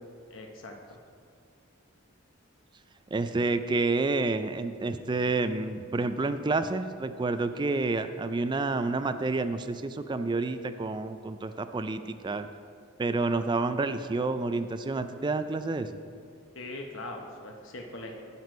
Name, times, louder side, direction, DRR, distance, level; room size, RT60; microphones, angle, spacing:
voice 1, 0.3-1.0 16.6-18.2, left 2 dB, 65° left, 2 dB, 0.9 m, -41 dB
voice 2, 3.1-12.5 13.0-16.0, right 3 dB, 20° right, 10 dB, 0.3 m, -29 dB
9.4 x 6.2 x 5.2 m, 2.3 s
head